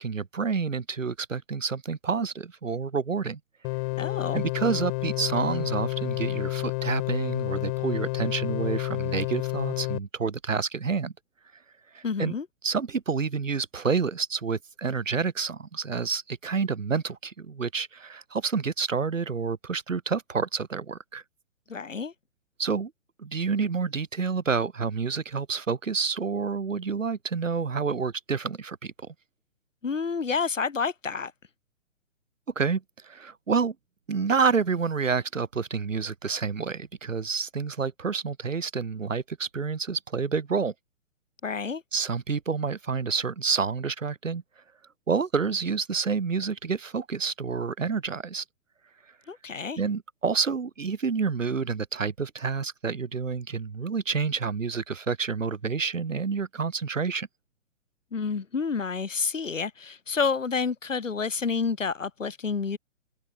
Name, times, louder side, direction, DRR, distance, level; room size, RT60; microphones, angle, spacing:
voice 1, 0.0-3.4 4.3-11.1 11.9-12.4 12.6-21.2 22.6-22.9 23.2-28.9 32.5-33.7 34.1-40.7 41.9-44.4 45.1-48.4 49.8-57.3, right 5 dB, 75° right, 3.2 m, -28 dB
sound 1, 3.6-10.0, left 28 dB, 30° left, 2.0 m, -30 dB
voice 2, 4.0-4.4 12.0-12.5 21.7-22.1 29.8-31.3 41.4-41.8 49.3-49.8 58.1-62.8, left 5 dB, 75° left, 7.2 m, -29 dB
figure-of-eight pair, 130°, 39 cm